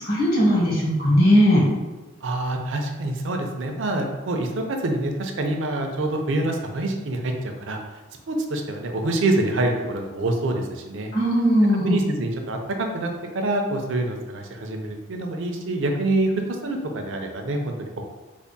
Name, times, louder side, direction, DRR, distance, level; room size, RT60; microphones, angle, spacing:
voice 1, 0.0-1.6 11.1-12.0, equal, 45° left, -5 dB, 1.1 m, -18 dB
voice 2, 2.2-7.8 8.3-11.1 11.7-13.1 13.3-16.3 16.6-18.1, right 2 dB, 65° right, 3 dB, 0.5 m, -26 dB
3.4 x 2.1 x 3.9 m, 1.2 s
head